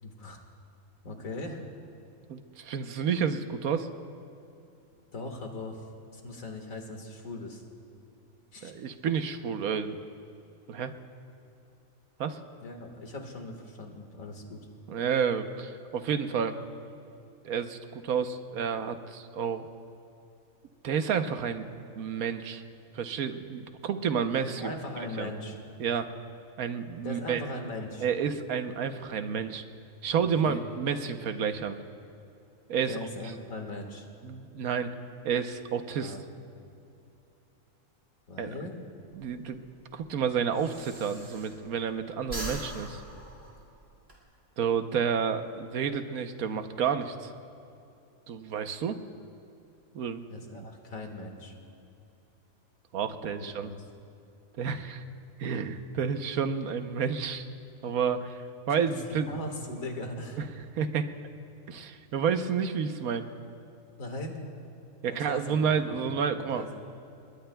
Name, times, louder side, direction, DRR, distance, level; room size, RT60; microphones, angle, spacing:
voice 1, 0.0-0.4 1.0-1.6 5.1-5.8 6.1-7.6 8.5-8.7 12.6-14.6 24.6-25.6 27.0-28.0 30.2-30.6 32.9-34.1 36.0-36.2 38.3-38.8 50.3-51.6 53.4-53.8 58.9-60.4 64.0-64.4 65.0-66.0 66.3-66.8, left 2 dB, 70° left, 3 dB, 2.2 m, -39 dB
voice 2, 2.3-3.9 8.6-10.0 10.7-10.9 12.2-12.4 14.9-16.6 17.4-19.7 20.8-21.7 22.0-22.6 22.9-24.7 25.2-25.3 25.8-26.1 26.6-27.4 28.0-29.6 30.0-31.8 32.7-33.3 34.2-34.9 35.2-36.2 38.4-38.5 39.1-39.6 39.9-43.0 44.6-47.3 48.3-49.0 49.9-50.3 50.5-50.6 52.9-53.7 54.6-55.0 55.4-57.5 57.8-59.4 60.4-61.1 61.7-63.3 65.0-66.7, right 7 dB, 85° right, 8 dB, 1.3 m, -30 dB
Breathing, 39.1-41.9 42.2-44.2, right 1 dB, 45° right, 3.1 m, -41 dB
29.0 x 21.5 x 2.3 m, 2.7 s
omnidirectional pair, 1.5 m